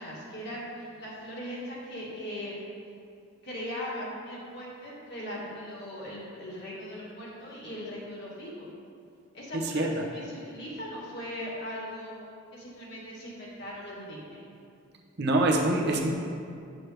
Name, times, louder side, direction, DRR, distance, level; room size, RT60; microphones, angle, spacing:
voice 1, 0.0-2.6 3.4-8.7 9.3-12.1 12.5-14.4, equal, 50° left, -6 dB, 1.9 m, -39 dB
voice 2, 9.5-9.9 15.2-16.1, right 2 dB, 50° right, 0 dB, 0.8 m, -25 dB
9.0 x 6.2 x 3.4 m, 2.4 s
head